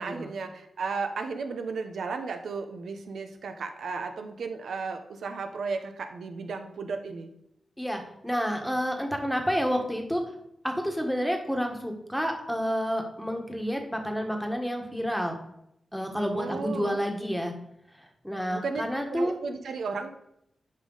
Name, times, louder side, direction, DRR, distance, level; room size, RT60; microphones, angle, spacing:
voice 1, 0.0-7.3 16.3-17.0 18.5-18.8 19.1-20.1, right 4 dB, 85° right, 6 dB, 1.0 m, -34 dB
voice 2, 7.8-10.2 10.6-15.4 15.9-17.5 18.0-19.4, equal, ahead, 3 dB, 1.4 m, -29 dB
9.9 x 5.5 x 4.0 m, 0.77 s
wide cardioid pair, 95°, 0 cm